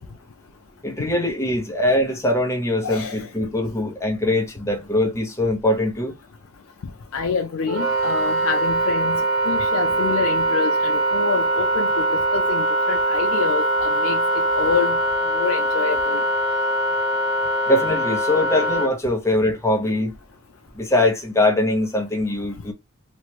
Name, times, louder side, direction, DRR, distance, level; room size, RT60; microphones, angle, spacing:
voice 1, 0.8-6.1 17.7-20.1 20.7-22.7, left 1 dB, 15° left, 0.9 m, -22 dB
voice 2, 2.8-3.3 7.1-15.0 15.3-16.2, left 5 dB, 75° left, 0.4 m, -27 dB
Wind instrument woodwind instrument, 7.7-18.9, right 1 dB, 70° right, 1.3 m, -22 dB
3.0 x 2.4 x 2.8 m
head